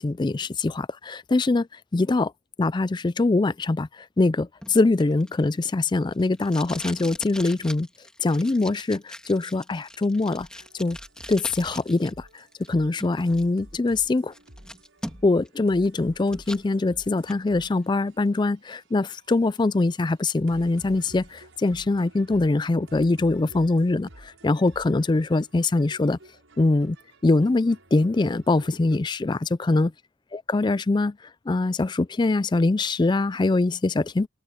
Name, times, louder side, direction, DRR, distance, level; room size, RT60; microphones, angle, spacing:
voice 1, 0.0-1.7 1.9-2.3 2.6-3.9 4.2-7.9 8.2-10.5 10.8-11.0 11.3-12.3 12.7-14.3 15.2-26.2 26.6-27.0 27.2-29.9 30.3-31.1 31.5-34.3, left 2 dB, 20° left, 0.3 m, -23 dB
Packing tape duct tape, 4.6-12.1 12.4-13.4 13.9-14.0 14.3-15.5 15.8-16.7 17.1-17.4, left 1 dB, 5° left, 2.7 m, -41 dB
sound 1, 10.4-29.0, right 1 dB, 75° right, 6.4 m, -52 dB
open air
head